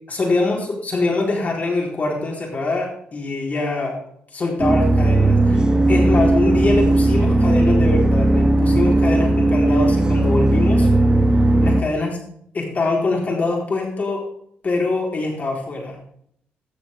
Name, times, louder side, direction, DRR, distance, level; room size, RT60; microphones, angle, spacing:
voice 1, 0.1-4.0 4.3-10.9 11.6-12.2 12.5-14.2 14.6-16.0, left 3 dB, 40° left, -1 dB, 4.0 m, -23 dB
sound 1, 4.6-11.8, right 2 dB, 20° right, 1.2 m, -16 dB
13.5 x 7.3 x 3.5 m, 0.68 s
cardioid pair, 75°, 4 cm